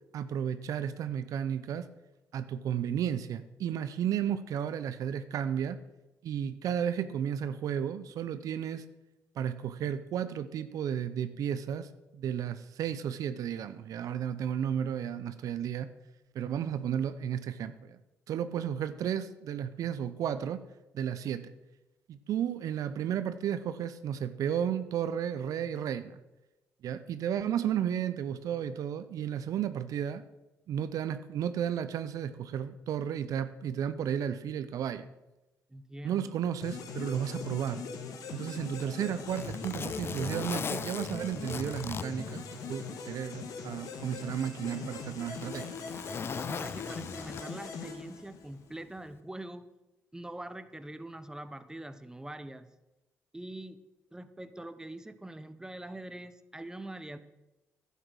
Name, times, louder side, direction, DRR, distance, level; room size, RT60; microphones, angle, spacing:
voice 1, 0.1-1.9 2.3-5.8 6.2-8.8 9.4-15.9 16.3-18.0 18.3-20.6 20.9-21.5 22.1-26.2 26.8-30.2 30.7-35.1 36.0-37.8 38.3-45.7, right 9 dB, 70° right, 13 dB, 0.6 m, -33 dB
voice 2, 35.7-36.3 42.9-43.1 46.5-49.6 50.1-52.7 53.3-53.8 54.1-57.2, right 1 dB, 10° right, 12 dB, 0.9 m, -43 dB
sound 1, 36.6-48.7, left 4 dB, 75° left, 1.5 m, -41 dB
Zipper (clothing), 38.6-43.1 43.5-43.6 44.3-47.8 49.0-49.2, left 6 dB, 40° left, 0.4 m, -40 dB
11.0 x 8.2 x 6.3 m, 1.0 s
supercardioid pair, 65°, 6 cm